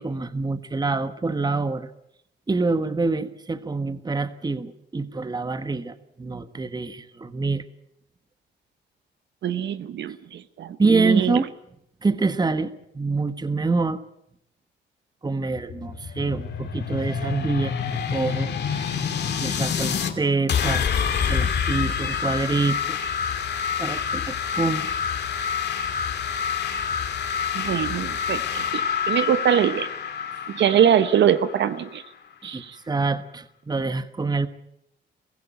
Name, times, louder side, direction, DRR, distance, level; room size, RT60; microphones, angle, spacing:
voice 1, 0.0-1.9 2.5-7.6 10.8-11.5 12.0-14.0 15.2-19.1 19.4-20.9 21.2-23.0 23.8-24.9 32.4-34.5, right 3 dB, 20° right, 12 dB, 1.4 m, -26 dB
voice 2, 9.4-11.4 27.5-29.9 30.5-32.0 32.4-32.8, right 9 dB, 65° right, 13 dB, 1.0 m, -23 dB
sound 1, 15.5-20.1 20.5-32.1, left 7 dB, 60° left, 2.7 m, -27 dB
23.5 x 15.5 x 9.1 m, 0.77 s
cardioid pair, 90°, 20 cm